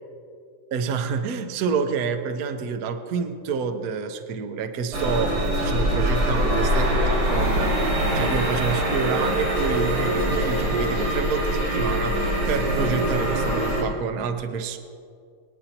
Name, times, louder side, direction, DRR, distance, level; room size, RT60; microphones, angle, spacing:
voice 1, 0.7-14.8, right 5 dB, 60° right, 6 dB, 1.1 m, -28 dB
sound 1, 4.9-13.8, right 1 dB, 90° right, 4.0 m, -23 dB
23.5 x 9.3 x 2.9 m, 2.2 s
omnidirectional pair, 2.3 m